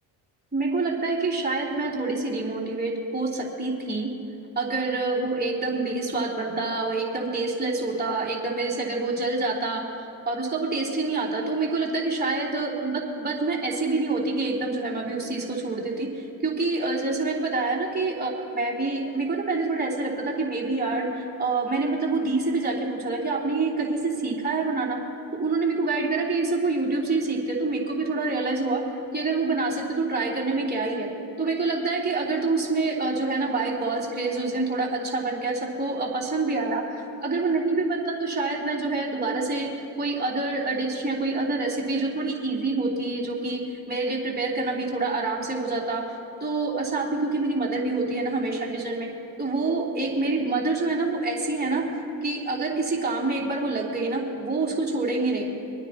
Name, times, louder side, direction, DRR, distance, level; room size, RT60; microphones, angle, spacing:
voice 1, 0.5-4.1 4.5-9.8 10.3-25.0 25.4-28.8 29.1-31.1 31.4-39.7 40.0-43.6 43.9-46.0 46.4-49.1 49.4-51.8 52.2-55.5, right 3 dB, 20° right, -5 dB, 3.2 m, -26 dB
27.0 x 9.6 x 2.9 m, 2.8 s
supercardioid pair, 65°, 44 cm